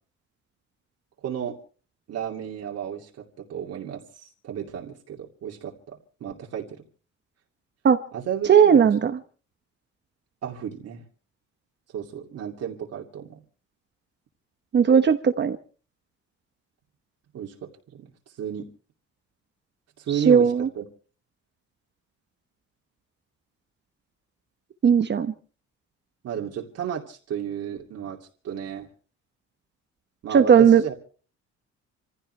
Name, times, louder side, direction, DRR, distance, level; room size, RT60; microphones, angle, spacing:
voice 1, 1.2-1.6 2.1-3.2 3.5-6.9 8.1-8.9 10.4-11.0 11.9-13.4 17.3-18.1 18.4-18.7 20.0-20.8 26.2-28.2 28.4-28.9 30.2-30.9, right 9 dB, 55° right, 0 dB, 2.7 m, -33 dB
voice 2, 8.5-9.1 14.7-15.6 20.3-20.7 24.8-25.3 30.3-30.8, right 7 dB, 35° right, 8 dB, 1.1 m, -16 dB
27.5 x 16.0 x 3.3 m, 0.40 s
cardioid pair, 155°, 29 cm